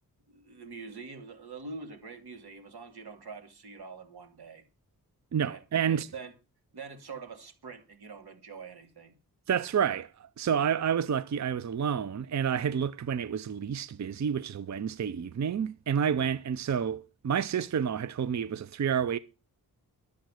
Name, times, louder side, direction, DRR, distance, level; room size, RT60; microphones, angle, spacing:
voice 1, 0.3-4.6 5.4-6.3 6.7-9.1, right 4 dB, 85° right, 2.9 m, -45 dB
voice 2, 5.3-6.1 9.5-19.2, right 8 dB, 50° right, 0.5 m, -29 dB
12.0 x 8.2 x 6.3 m
wide cardioid pair, 145°, 37 cm